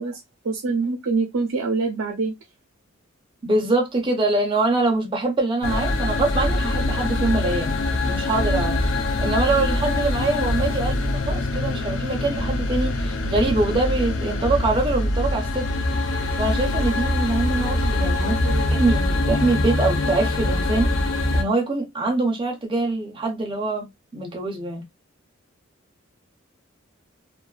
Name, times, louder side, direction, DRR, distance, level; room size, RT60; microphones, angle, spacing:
voice 1, 0.0-2.3 18.2-18.8, right 4 dB, 85° right, 0.5 m, -26 dB
voice 2, 3.4-15.7 16.4-20.9 21.3-23.9 24.1-24.8, right 2 dB, 25° right, 0.5 m, -24 dB
sound 1, 5.6-21.4, left 2 dB, 75° left, 0.5 m, -23 dB
2.4 x 2.3 x 2.3 m
head